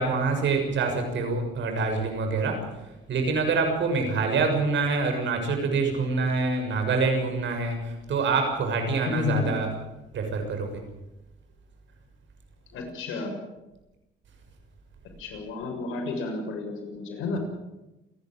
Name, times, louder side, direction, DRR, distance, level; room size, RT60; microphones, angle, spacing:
voice 1, 0.0-2.6 3.1-9.7 10.1-10.8, right 4 dB, 70° right, 4 dB, 6.7 m, -26 dB
voice 2, 9.1-9.6 12.7-13.3 15.2-17.4, left 4 dB, 90° left, 2 dB, 6.7 m, -31 dB
28.0 x 11.5 x 9.2 m, 0.99 s
cardioid pair, 90°, 20 cm